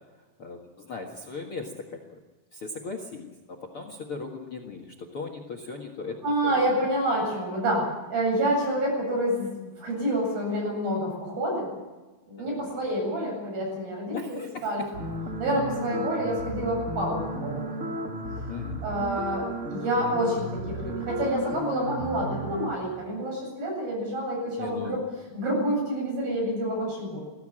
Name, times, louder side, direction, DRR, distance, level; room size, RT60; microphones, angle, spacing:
voice 1, 0.4-2.2 2.5-6.9 12.4-12.7 14.1-14.9 15.8-16.1 18.5-18.8 24.6-25.0, left 4 dB, 55° left, 5 dB, 1.5 m, -38 dB
voice 2, 6.2-11.7 12.3-14.2 14.6-14.9 15.4-18.1 18.8-25.0 25.3-27.2, right 1 dB, 55° right, 0 dB, 9.9 m, -28 dB
sound 1, 14.9-22.7, right 1 dB, 35° right, 1.3 m, -34 dB
22.0 x 15.5 x 8.9 m, 1.2 s
omnidirectional pair, 5.1 m